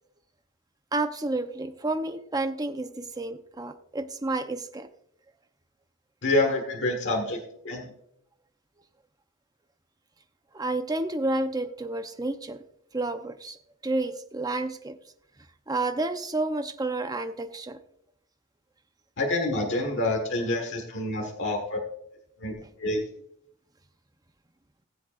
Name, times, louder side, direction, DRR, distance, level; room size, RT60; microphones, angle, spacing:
voice 1, 0.9-4.9 10.5-12.6 12.9-13.6 13.8-15.0 15.7-17.8, right 2 dB, 20° right, 8 dB, 0.7 m, -30 dB
voice 2, 6.2-7.4 7.6-7.9 19.2-21.8 22.4-22.5 22.8-23.0, left 2 dB, 60° left, 2 dB, 1.5 m, -27 dB
19.0 x 7.5 x 2.5 m, 0.73 s
head